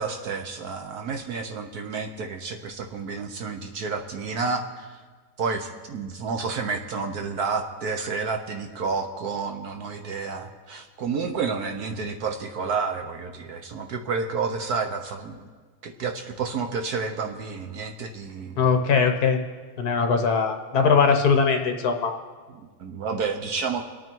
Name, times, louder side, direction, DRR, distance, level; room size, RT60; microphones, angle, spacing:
voice 1, 0.0-5.0 5.4-15.5 15.8-18.7 22.6-23.8, right 5 dB, 60° right, 5 dB, 1.3 m, -30 dB
voice 2, 18.6-19.4 19.8-22.1, left 5 dB, 55° left, 5 dB, 1.5 m, -21 dB
26.5 x 9.2 x 4.6 m, 1.5 s
omnidirectional pair, 2.1 m